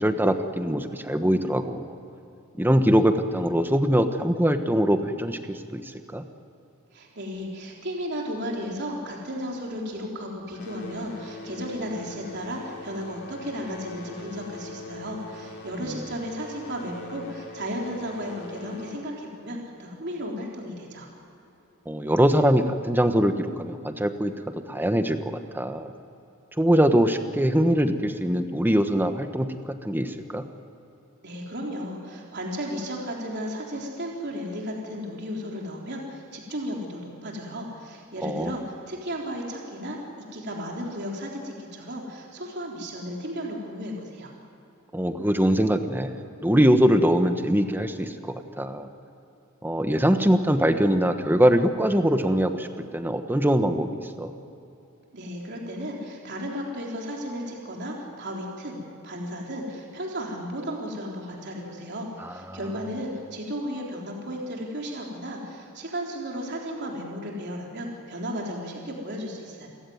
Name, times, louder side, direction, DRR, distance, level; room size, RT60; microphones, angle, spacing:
voice 1, 0.0-1.9 2.6-5.8 6.1-6.2 15.8-16.0 21.9-25.9 26.6-30.5 38.2-38.5 44.9-48.9 49.6-53.9 54.2-54.3 62.2-62.6, equal, 10° right, 8 dB, 1.2 m, -23 dB
voice 2, 6.9-21.1 31.2-44.3 55.1-58.8 59.0-69.7, equal, 55° right, -1 dB, 3.7 m, -34 dB
sound 1, 8.7-10.1 10.4-20.7 21.6-21.7 22.3-22.4 23.1-23.2, left 3 dB, 50° left, 3.1 m, -43 dB
28.5 x 15.5 x 9.4 m, 2.8 s
head